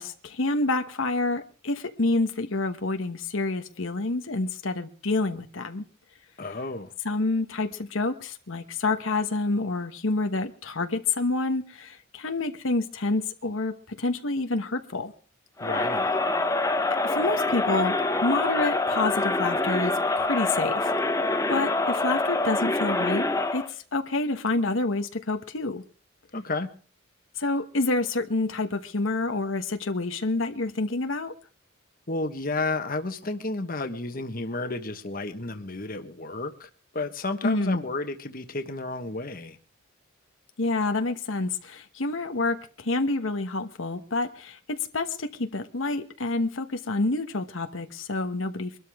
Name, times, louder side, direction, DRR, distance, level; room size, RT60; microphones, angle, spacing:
voice 1, 0.0-5.8 7.0-15.1 17.0-20.9 21.5-23.3 23.5-25.8 27.4-31.3 37.4-37.8 40.6-48.8, left 2 dB, 75° left, 7 dB, 1.2 m, -28 dB
voice 2, 6.4-6.9 15.6-16.1 26.3-26.7 32.1-39.6, left 2 dB, 45° left, 8 dB, 1.3 m, -32 dB
Crowd, 15.6-23.7, left 2 dB, 15° left, 1.0 m, -25 dB
23.5 x 13.0 x 3.6 m, 0.39 s
head